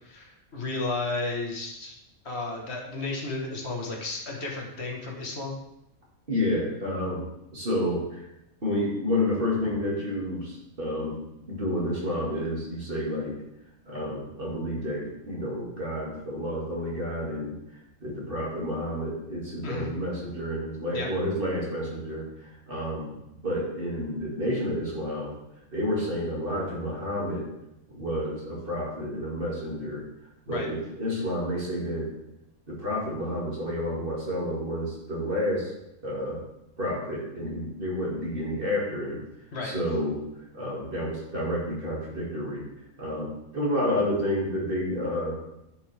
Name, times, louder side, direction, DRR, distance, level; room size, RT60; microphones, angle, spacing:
voice 1, 0.0-2.0 2.2-5.5 19.6-19.9 20.9-21.1 30.5-30.7 39.5-39.7, left 3 dB, 50° left, 0 dB, 1.6 m, -33 dB
voice 2, 6.3-7.2 7.5-8.3 8.6-11.2 11.5-13.3 13.9-17.5 18.0-25.3 25.7-27.4 27.9-30.0 30.5-32.1 32.7-35.7 36.0-36.4 36.8-39.2 39.6-40.2 40.5-42.6 43.0-45.4, left 1 dB, 40° right, -4 dB, 2.4 m, -30 dB
10.5 x 5.3 x 3.4 m, 0.85 s
omnidirectional pair, 1.5 m